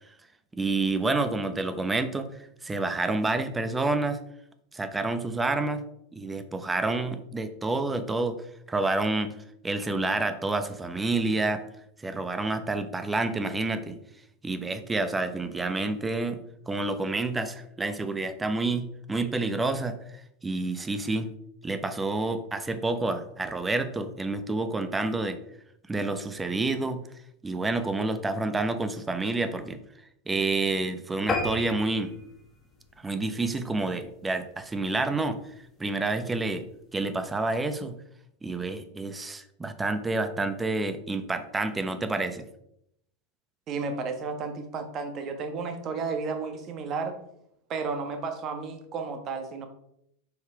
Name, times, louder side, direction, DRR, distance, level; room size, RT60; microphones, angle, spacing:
voice 1, 0.5-2.3 2.6-4.2 4.7-5.8 6.1-8.4 8.7-9.3 9.6-11.6 12.0-14.0 14.4-16.4 16.7-20.0 20.4-21.3 21.6-25.4 25.9-27.0 27.4-29.8 30.3-32.1 33.0-35.4 35.8-36.6 36.9-38.0 38.4-42.5, right 2 dB, 15° right, 10 dB, 0.9 m, -28 dB
sound 1, 31.3-34.0 34.5-34.7 35.1-35.2 35.5-35.6 35.9-36.0, left 3 dB, 20° left, 1.9 m, -33 dB
voice 2, 43.7-47.1 47.7-49.7, right 4 dB, 40° right, 6 dB, 1.4 m, -32 dB
6.8 x 4.6 x 4.8 m, 0.76 s
hypercardioid pair, 90°, 0 cm